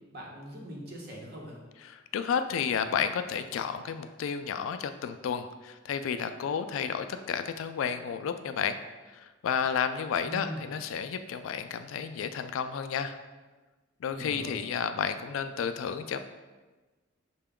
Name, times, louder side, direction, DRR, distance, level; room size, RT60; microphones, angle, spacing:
voice 1, 0.1-1.6 10.2-10.6 14.1-14.5, equal, 50° right, -2 dB, 0.9 m, -41 dB
voice 2, 1.8-8.8 9.1-13.2 14.0-16.2, left 7 dB, 85° left, 10 dB, 0.3 m, -32 dB
5.8 x 2.2 x 3.6 m, 1.2 s
head